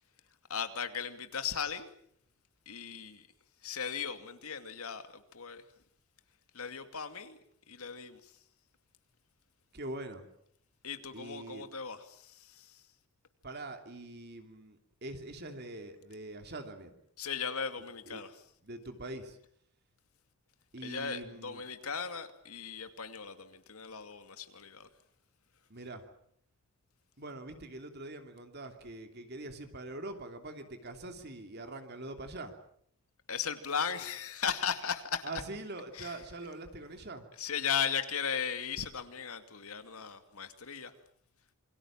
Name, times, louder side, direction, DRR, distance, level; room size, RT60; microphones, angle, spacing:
voice 1, 0.5-1.9 2.7-3.2 3.6-5.0 5.3-5.6 6.5-7.4 7.7-8.2 10.8-12.7 17.2-18.4 20.8-24.9 33.3-35.3 35.9-36.2 37.3-40.9, left 7 dB, 75° left, 9 dB, 2.5 m, -37 dB
voice 2, 9.7-10.2 11.1-11.7 13.4-16.9 18.1-18.2 18.6-19.3 20.7-21.6 25.7-26.0 27.2-32.5 35.2-37.2, right 2 dB, 45° right, 6 dB, 2.8 m, -43 dB
27.5 x 24.0 x 7.4 m, 0.66 s
head